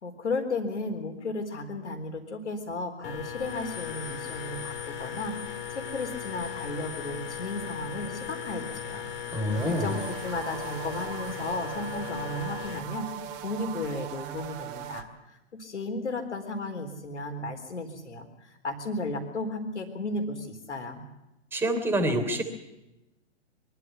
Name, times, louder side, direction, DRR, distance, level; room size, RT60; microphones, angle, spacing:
voice 1, 0.0-13.1 13.4-21.0, left 2 dB, 75° left, 5 dB, 4.0 m, -34 dB
sound 1, 3.0-12.8, left 8 dB, 55° left, 4.0 m, -37 dB
voice 2, 9.3-9.9 21.5-22.4, right 1 dB, 5° right, 7 dB, 3.2 m, -26 dB
sound 2, 9.5-15.0, right 11 dB, 30° right, 2.0 m, -39 dB
23.5 x 13.0 x 9.5 m, 0.95 s
figure-of-eight pair, 120°, 35 cm